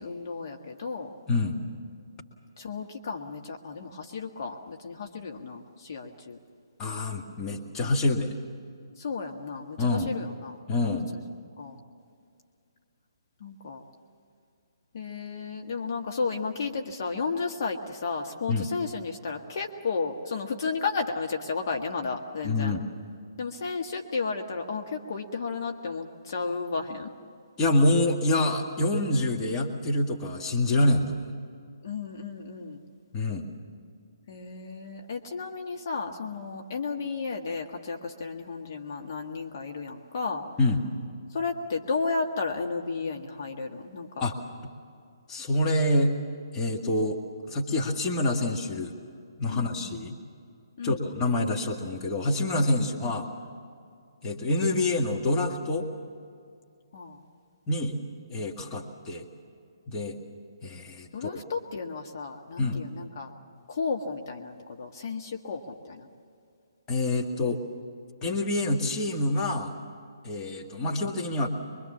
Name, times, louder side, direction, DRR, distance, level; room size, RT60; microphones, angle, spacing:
voice 1, 0.0-1.1 2.6-6.4 9.0-11.2 11.6-11.8 13.4-13.8 14.9-22.7 23.4-27.1 31.8-32.8 34.3-40.4 41.3-44.3 49.5-50.1 50.8-51.1 52.8-53.1 56.9-57.2 61.1-63.3 63.7-66.1 70.8-71.0, left 4 dB, 45° left, 2 dB, 1.6 m, -33 dB
voice 2, 1.3-1.6 6.8-8.3 9.8-10.1 10.7-11.1 18.5-18.7 22.4-22.8 27.6-31.4 33.1-33.5 40.6-40.8 44.2-44.3 45.3-46.1 46.5-47.2 47.5-48.9 49.4-50.2 50.8-53.3 54.2-55.9 57.7-58.0 58.3-59.3 59.9-60.2 60.6-61.3 62.6-62.8 66.9-67.6 68.2-69.8 70.2-71.5, left 2 dB, 20° left, 0 dB, 1.9 m, -26 dB
24.5 x 23.5 x 7.3 m, 2.4 s
figure-of-eight pair, 135°, 2 cm